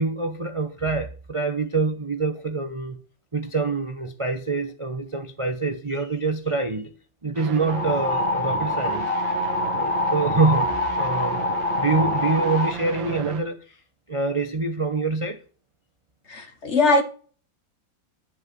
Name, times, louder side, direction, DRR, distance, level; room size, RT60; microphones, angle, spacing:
voice 1, 0.0-3.0 3.3-6.9 7.2-9.1 9.7-10.7 11.0-11.4 11.8-13.8 14.1-15.4, right 3 dB, 30° right, 0.6 m, -25 dB
sound 1, 7.3-13.4, right 8 dB, 85° right, 1.9 m, -34 dB
sound 2, 7.7-12.7, left 2 dB, 20° left, 1.3 m, -25 dB
voice 2, 16.3-17.0, left 3 dB, 40° left, 1.6 m, -20 dB
10.5 x 6.0 x 6.1 m
omnidirectional pair, 2.0 m